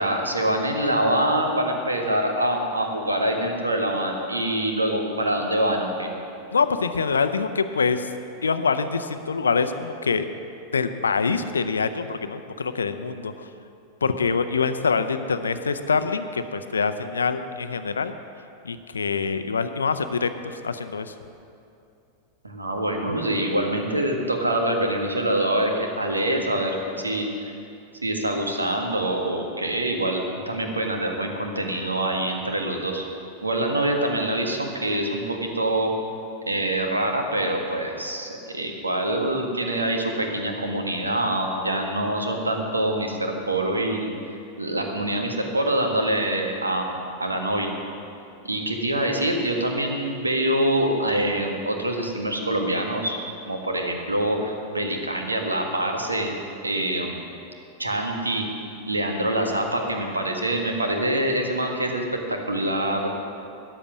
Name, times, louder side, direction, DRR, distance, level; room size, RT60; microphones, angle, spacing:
voice 1, 0.0-6.1 22.4-27.5 28.0-33.0 33.4-35.9 36.5-44.1 44.6-47.7 48.4-53.2 53.4-56.4 56.6-57.2 57.8-58.5 58.9-63.1, right 1 dB, 80° right, 3 dB, 1.5 m, -25 dB
voice 2, 6.5-8.1 8.4-10.3 10.7-13.3 14.0-18.1 18.6-21.1, left 5 dB, 70° left, 10 dB, 0.6 m, -25 dB
13.5 x 10.0 x 6.0 m, 2.6 s
figure-of-eight pair, 90°, 0 cm